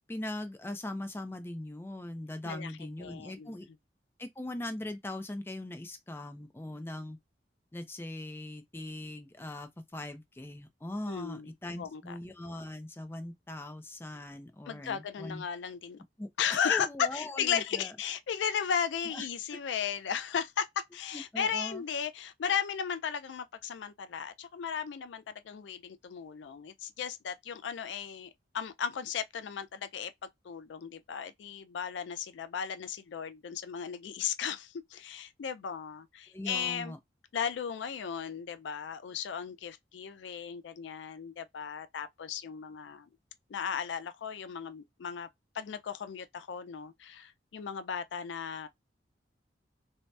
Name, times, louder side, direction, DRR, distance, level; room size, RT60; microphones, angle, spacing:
voice 1, 0.1-3.7 4.2-7.2 7.7-15.4 16.2-17.9 19.1-19.6 21.1-21.8 36.3-37.0, left 1 dB, 15° left, 0.4 m, -40 dB
voice 2, 3.0-3.6 11.1-11.5 11.7-12.1 14.7-16.0 16.4-20.7 20.9-36.9 37.3-43.1 43.5-45.3 45.5-48.7, left 7 dB, 90° left, 0.4 m, -35 dB
2.7 x 2.1 x 3.2 m
head